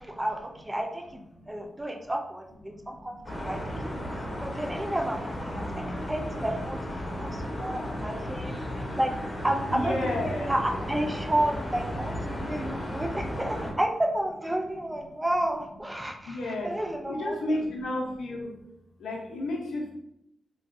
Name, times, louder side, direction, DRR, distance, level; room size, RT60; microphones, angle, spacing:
voice 1, 0.0-1.2 1.5-3.1 3.4-9.1 9.4-16.4 16.6-17.4, right 1 dB, 15° right, 3 dB, 0.5 m, -31 dB
voice 2, 1.4-1.7 2.7-3.3 3.7-3.8 4.1-4.4 5.6-6.1 7.0-7.6 8.6-9.0 9.7-10.5 12.4-12.5 16.2-16.7 17.1-18.6 19.0-19.9, left 1 dB, 85° left, 0 dB, 0.7 m, -34 dB
sound 1, 3.2-13.7, equal, 25° left, 1.1 m, -34 dB
3.7 x 2.3 x 2.5 m, 0.81 s
cardioid pair, 55°, 0 cm